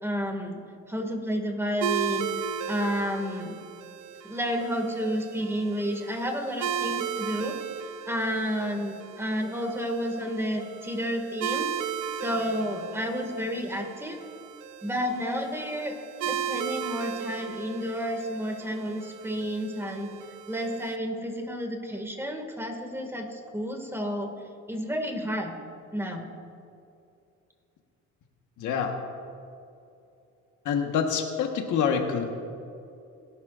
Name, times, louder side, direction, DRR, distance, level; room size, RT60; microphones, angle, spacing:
voice 1, 0.0-0.6 0.9-2.3 2.7-3.5 4.2-7.6 8.0-11.7 12.1-14.2 14.8-15.9 16.2-20.1 20.5-24.3 24.7-25.5 25.9-26.3, equal, 10° right, 3 dB, 2.1 m, -31 dB
sound 1, 1.8-21.0, right 8 dB, 85° right, 0.7 m, -36 dB
voice 2, 28.6-28.9 30.6-32.2, left 7 dB, 80° left, 3 dB, 1.4 m, -26 dB
21.5 x 11.5 x 2.6 m, 2.6 s
cardioid pair, 90°, 30 cm